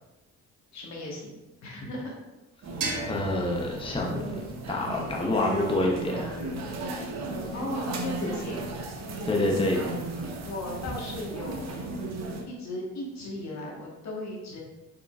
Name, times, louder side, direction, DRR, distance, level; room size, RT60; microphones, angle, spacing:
voice 1, 0.7-1.4 1.6-2.2 7.5-8.6 10.4-11.7 12.5-14.6, left 1 dB, 65° left, -2 dB, 1.4 m, -36 dB
sound 1, 2.6-12.4, right 2 dB, 60° right, 0.9 m, -35 dB
sound 2, 2.8-5.6, right 2 dB, 80° right, 1.3 m, -38 dB
voice 2, 3.1-4.3 4.7-6.5 9.2-10.2, left 2 dB, 15° left, -1 dB, 0.7 m, -28 dB
4.9 x 4.4 x 2.4 m, 1.1 s
cardioid pair, 90°, 30 cm